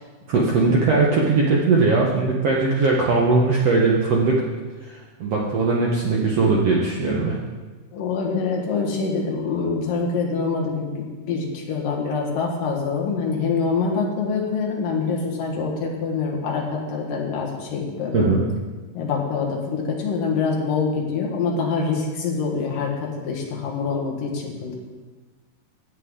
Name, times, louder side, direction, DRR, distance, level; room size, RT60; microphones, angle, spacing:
voice 1, 0.3-4.4 4.8-7.4 18.1-18.4, right 3 dB, 75° right, -3 dB, 1.4 m, -20 dB
voice 2, 7.9-18.4 18.9-24.8, left 4 dB, 65° left, 0 dB, 3.1 m, -25 dB
16.5 x 7.8 x 3.8 m, 1.3 s
omnidirectional pair, 4.3 m